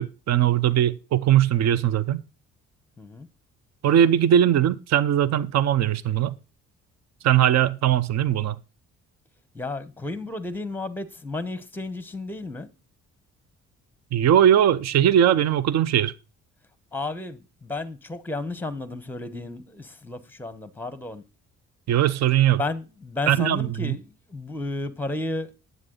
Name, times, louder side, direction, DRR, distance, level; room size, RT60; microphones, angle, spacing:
voice 1, 0.0-2.2 3.8-6.4 7.2-8.6 14.1-16.1 21.9-22.6 23.3-23.9, right 10 dB, 60° right, 0.6 m, -20 dB
voice 2, 3.0-3.3 9.5-12.7 16.9-21.2 22.6-25.5, left 2 dB, 5° left, 0.9 m, -33 dB
9.6 x 7.9 x 3.8 m
cardioid pair, 90°, 30 cm